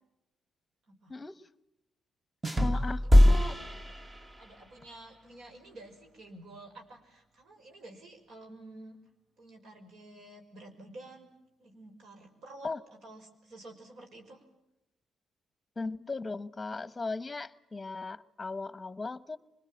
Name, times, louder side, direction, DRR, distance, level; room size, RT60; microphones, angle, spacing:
voice 1, 1.1-1.4 2.5-3.6 12.6-12.8 15.8-19.4, left 3 dB, 20° left, 16 dB, 1.1 m, -37 dB
sound 1, 2.4-4.6, left 1 dB, 20° right, 1.3 m, -23 dB
voice 2, 2.6-3.5 4.4-9.0 9.4-11.3 11.6-12.7 13.0-14.5, right 2 dB, 65° right, 3 dB, 5.8 m, -50 dB
25.5 x 21.0 x 8.9 m, 0.89 s
cardioid pair, 90°, 0 cm